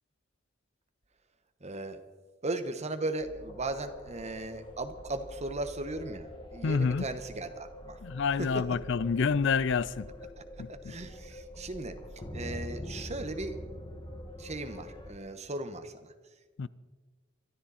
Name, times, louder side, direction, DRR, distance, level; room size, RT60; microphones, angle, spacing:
voice 1, 1.6-2.0 2.4-8.0 8.4-8.6 10.7-12.0 12.3-13.6 14.4-16.1, right 2 dB, 35° right, 1.3 m, -37 dB
sound 1, 3.2-15.1, equal, 25° left, 1.9 m, -45 dB
voice 2, 6.6-7.1 8.0-10.1 10.6-10.9 16.6-16.7, left 5 dB, 65° left, 0.5 m, -28 dB
24.0 x 13.5 x 4.3 m
head